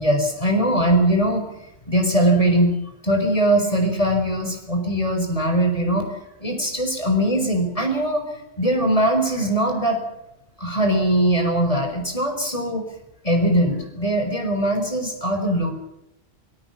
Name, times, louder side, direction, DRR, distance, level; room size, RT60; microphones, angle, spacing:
voice 1, 0.0-1.4 1.9-2.7 3.0-6.0 6.4-8.3 8.6-10.0 10.6-12.9 13.2-15.7, right 1 dB, 30° left, 4 dB, 4.6 m, -21 dB
25.0 x 20.5 x 5.8 m, 0.85 s
omnidirectional pair, 1.1 m